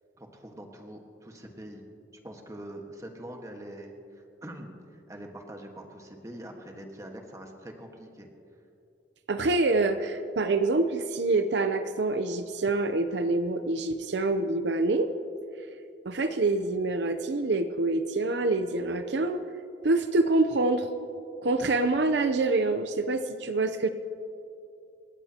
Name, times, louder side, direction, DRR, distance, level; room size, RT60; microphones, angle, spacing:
voice 1, 0.2-1.9 2.2-8.3, right 1 dB, 20° right, 2 dB, 1.5 m, -44 dB
voice 2, 9.3-15.1 16.0-19.4 19.8-20.9 21.4-23.9, right 2 dB, 70° right, 9 dB, 0.7 m, -26 dB
27.5 x 15.0 x 2.9 m, 2.6 s
head